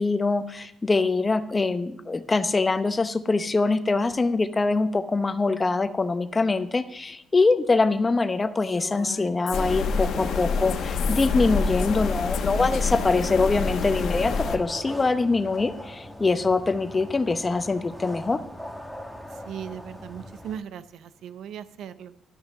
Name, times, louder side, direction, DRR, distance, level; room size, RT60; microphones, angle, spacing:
voice 1, 0.0-18.4, left 3 dB, 25° left, 11 dB, 0.7 m, -24 dB
Female speech woman speaking, 8.6-12.0 12.3-14.1, left 8 dB, 85° left, 0.8 m, -40 dB
sound 1, 9.5-14.6, left 4 dB, 70° left, 1.2 m, -27 dB
sound 2, 13.7-20.6, left 1 dB, 5° right, 1.3 m, -40 dB
voice 2, 19.3-22.1, right 9 dB, 75° right, 14 dB, 0.5 m, -38 dB
12.0 x 5.7 x 6.7 m, 0.76 s
cardioid pair, 90°, 0 cm